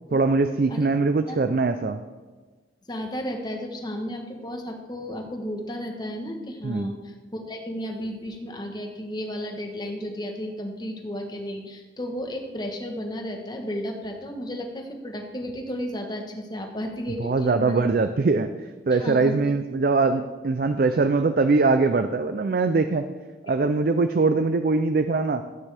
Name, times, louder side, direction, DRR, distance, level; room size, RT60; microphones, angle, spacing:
voice 1, 0.1-2.0 6.6-6.9 17.2-23.1 23.4-25.4, right 3 dB, 50° right, 9 dB, 0.4 m, -22 dB
voice 2, 2.9-17.8 18.9-19.4, equal, 20° left, 3 dB, 1.1 m, -33 dB
13.0 x 8.9 x 3.4 m, 1.3 s
head